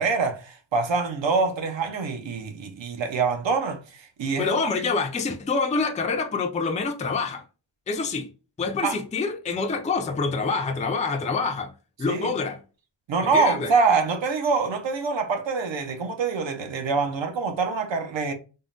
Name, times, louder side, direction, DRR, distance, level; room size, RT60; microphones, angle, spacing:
voice 1, 0.0-4.7 8.8-9.0 12.0-12.3 13.1-18.3, right 4 dB, 65° right, 0.7 m, -25 dB
voice 2, 4.4-7.4 7.9-8.3 8.6-11.7 12.0-12.6 13.2-13.7, left 4 dB, 15° left, 0.3 m, -26 dB
3.6 x 2.1 x 2.4 m
wide cardioid pair, 115°, 48 cm